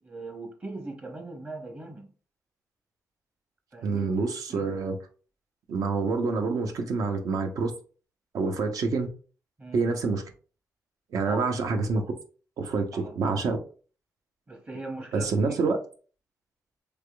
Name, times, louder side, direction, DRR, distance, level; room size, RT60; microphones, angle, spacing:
voice 1, 0.0-2.1 3.7-4.1 4.5-4.7 9.6-9.9 11.3-11.5 12.9-13.2 14.5-15.6, right 2 dB, 30° right, 0.8 m, -40 dB
voice 2, 3.8-5.0 5.7-7.7 8.3-9.1 9.7-10.2 11.1-12.0 12.6-13.6 15.1-15.8, right 4 dB, 80° right, 0.7 m, -27 dB
3.4 x 3.4 x 2.2 m
wide cardioid pair, 125°, 6 cm